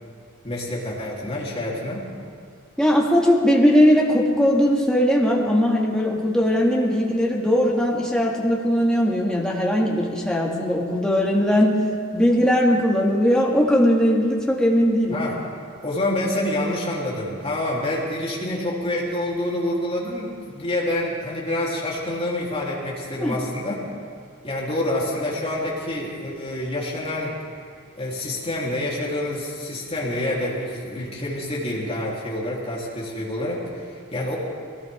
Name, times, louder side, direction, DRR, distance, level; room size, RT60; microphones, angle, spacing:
voice 1, 0.4-2.1 15.1-15.4 15.8-23.8 24.4-27.4 28.0-34.4, left 1 dB, 30° left, -5 dB, 3.2 m, -27 dB
voice 2, 2.8-11.8 12.1-15.3 23.2-23.3, equal, 5° left, -3 dB, 2.0 m, -19 dB
22.0 x 18.5 x 3.6 m, 2.2 s
head